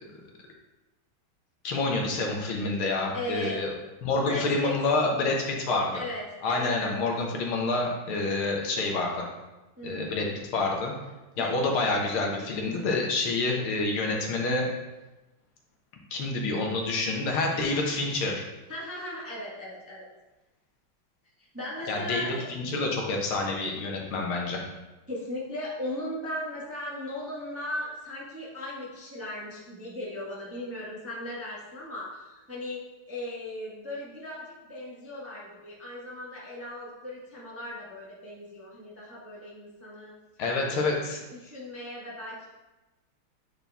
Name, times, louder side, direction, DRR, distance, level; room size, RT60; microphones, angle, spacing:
voice 1, 1.6-3.7 4.0-6.0 6.4-9.3 9.8-10.3 10.5-10.9 11.4-14.7 16.1-18.5 21.9-24.6 40.4-41.2, left 3 dB, 80° left, 0 dB, 1.9 m, -28 dB
voice 2, 3.1-3.6 4.2-4.7 5.9-7.1 9.8-10.3 11.4-11.5 18.7-20.1 21.5-22.4 25.1-40.1 40.6-40.8 41.3-42.5, left 1 dB, 10° right, -5 dB, 0.8 m, -37 dB
8.7 x 4.4 x 3.4 m, 1.0 s
omnidirectional pair, 2.3 m